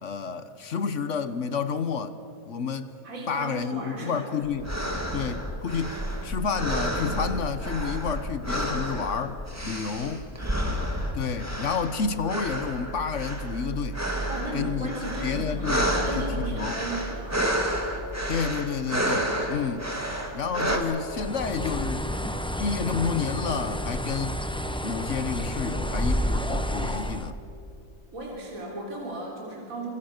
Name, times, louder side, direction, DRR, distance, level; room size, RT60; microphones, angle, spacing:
voice 1, 0.0-2.2 2.5-2.9 3.3-4.7 5.1-10.3 11.1-14.0 14.5-14.9 15.2-16.8 18.3-19.9 20.3-22.1 22.6-24.4 24.8-27.4, left 6 dB, 50° left, 1.1 m, -30 dB
voice 2, 3.0-4.3 14.3-17.4 28.1-29.9, right 2 dB, 50° right, 3.9 m, -35 dB
sound 1, 4.4-20.8, equal, 10° right, 2.3 m, -30 dB
Bird, 21.1-27.3, equal, 5° left, 0.4 m, -30 dB
26.5 x 26.0 x 6.5 m
omnidirectional pair, 1.8 m